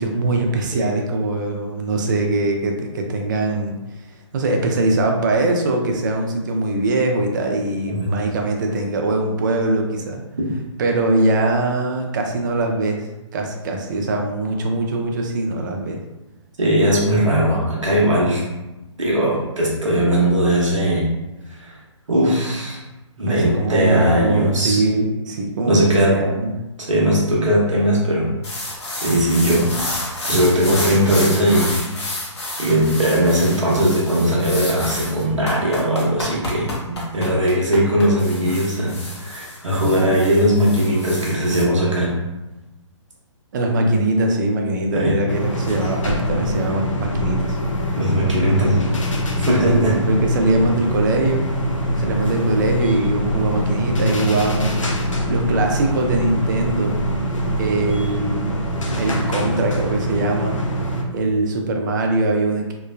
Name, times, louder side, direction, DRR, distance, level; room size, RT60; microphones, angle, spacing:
voice 1, 0.0-3.8 4.3-10.2 10.8-13.1 13.3-16.0 23.3-26.5 43.5-47.6 48.4-48.9 49.7-51.5 52.0-54.7 55.3-57.0 57.6-58.6 59.0-60.6 61.1-62.7, right 2 dB, 40° right, 3 dB, 0.4 m, -22 dB
voice 2, 16.6-18.4 19.0-21.1 21.6-21.7 22.1-22.8 23.2-24.8 25.7-26.2 26.9-28.3 28.9-29.7 30.3-31.7 32.6-42.1 44.9-45.2 48.0-48.8 49.4-50.0, equal, 75° right, -4 dB, 1.0 m, -19 dB
sound 1, 28.4-41.6, left 1 dB, 60° left, 0.9 m, -30 dB
sound 2, 45.3-61.0, equal, 85° left, 0.5 m, -23 dB
3.1 x 2.1 x 2.2 m, 1.0 s
figure-of-eight pair, 135°, 16 cm